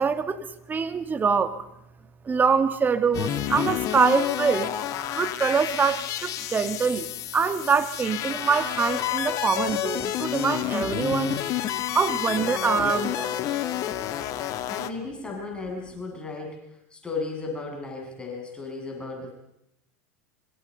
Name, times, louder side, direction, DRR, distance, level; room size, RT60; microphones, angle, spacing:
voice 1, 0.0-1.6 2.2-4.7 5.1-11.4 11.9-13.4, right 5 dB, 25° right, 9 dB, 2.5 m, -24 dB
sound 1, 3.1-14.9, left 12 dB, 50° left, 2.1 m, -29 dB
voice 2, 14.7-19.3, left 3 dB, 10° left, 0 dB, 8.0 m, -35 dB
26.0 x 25.5 x 5.6 m, 0.83 s
hypercardioid pair, 90°, 8 cm